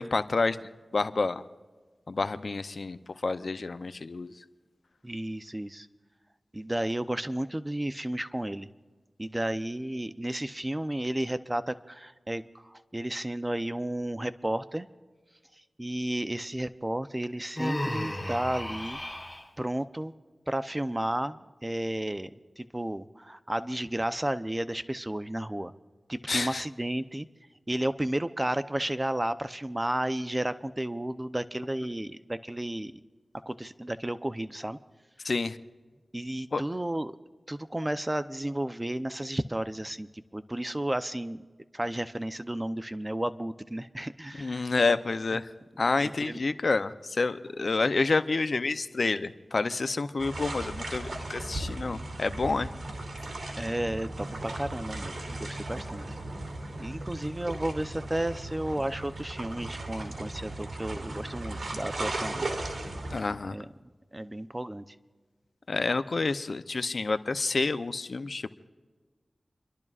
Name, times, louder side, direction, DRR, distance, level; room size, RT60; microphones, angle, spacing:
voice 1, 0.0-1.4 2.1-4.3 26.3-26.6 35.2-35.6 36.5-36.6 44.4-45.5 45.8-52.7 63.1-63.6 65.7-68.5, left 3 dB, 70° left, 12 dB, 0.6 m, -29 dB
voice 2, 5.0-5.9 6.5-8.7 9.2-14.9 15.6-19.0 19.6-20.1 20.5-22.3 22.6-25.7 26.1-27.3 27.7-32.9 33.5-34.8 36.1-37.1 37.5-41.5 41.7-44.7 46.0-46.4 53.6-56.0 56.8-62.5 63.5-63.7 64.1-65.0, right 1 dB, 20° right, 12 dB, 0.7 m, -32 dB
Human voice, 17.6-19.4, left 1 dB, 10° left, 3.8 m, -33 dB
sound 1, 50.2-63.2, right 2 dB, 70° right, 2.7 m, -37 dB
30.0 x 12.0 x 2.5 m, 1.4 s
cardioid pair, 40°, 0 cm